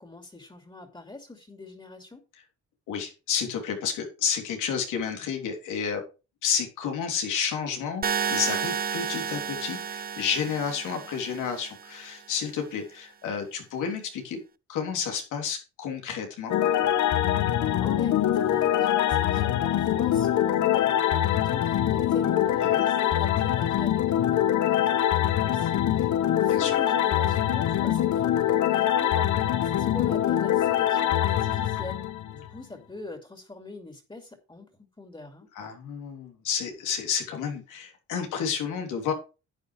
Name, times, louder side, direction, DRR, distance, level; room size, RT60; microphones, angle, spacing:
voice 1, 0.0-2.2 17.6-32.0 32.3-34.7 35.0-35.5, left 2 dB, 15° left, 2.7 m, -43 dB
voice 2, 2.9-6.0 6.4-8.0 8.3-14.4 14.7-16.5 22.2-22.3 22.6-22.9 26.5-26.8 35.5-39.1, left 7 dB, 90° left, 3.3 m, -31 dB
sound 1, 8.0-12.0, right 7 dB, 30° right, 0.7 m, -31 dB
sound 2, 16.5-32.6, left 11 dB, 70° left, 1.1 m, -24 dB
11.0 x 8.7 x 3.4 m
cardioid pair, 90°, 30 cm